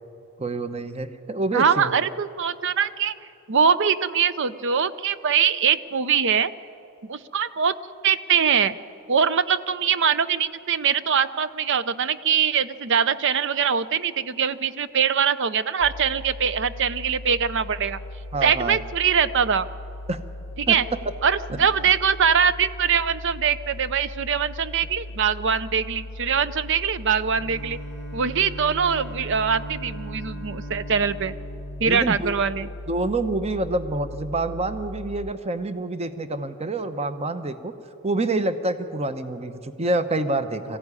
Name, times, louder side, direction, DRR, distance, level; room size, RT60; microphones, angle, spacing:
voice 1, 0.4-1.9 18.3-18.8 20.1-20.2 20.7-20.8 21.5-21.6 31.9-32.3 32.9-37.7 38.0-40.8, right 2 dB, 30° right, 10 dB, 0.8 m, -27 dB
voice 2, 1.5-3.1 3.5-6.5 7.0-7.7 8.0-8.8 9.1-18.0 18.4-19.7 20.6-20.9 21.2-27.8 28.1-31.3 31.8-32.7, right 7 dB, 55° right, 15 dB, 0.6 m, -22 dB
sound 1, 15.8-35.3, left 1 dB, 55° left, 0.6 m, -38 dB
Bowed string instrument, 27.2-32.8, right 2 dB, 70° right, 3.8 m, -40 dB
21.5 x 15.0 x 9.7 m, 2.8 s
head